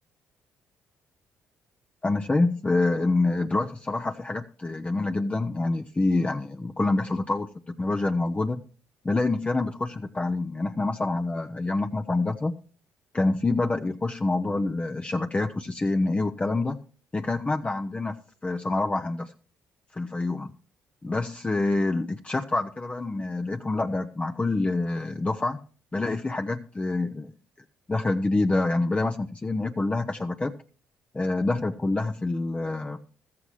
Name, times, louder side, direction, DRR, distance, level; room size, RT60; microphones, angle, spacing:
voice 1, 2.0-8.6 9.0-12.5 13.1-16.8 17.1-18.2 18.4-19.3 19.9-20.5 21.0-25.6 25.9-27.3 27.9-30.5 31.1-33.0, left 2 dB, 20° left, 6 dB, 0.7 m, -26 dB
14.5 x 13.5 x 3.0 m, 0.40 s
supercardioid pair, 60°, 5 cm